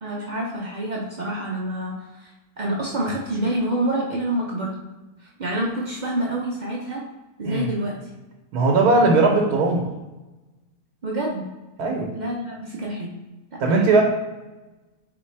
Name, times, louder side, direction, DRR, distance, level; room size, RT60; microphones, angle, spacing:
voice 1, 0.0-4.8 5.2-7.0 7.4-8.0 11.0-11.5 12.1-13.1 13.5-13.8, right 1 dB, 70° right, -3 dB, 0.4 m, -27 dB
voice 2, 8.5-9.9 11.8-12.1 13.6-14.0, right 3 dB, 90° right, 0 dB, 1.2 m, -18 dB
4.0 x 3.8 x 3.2 m, 1.1 s
omnidirectional pair, 1.6 m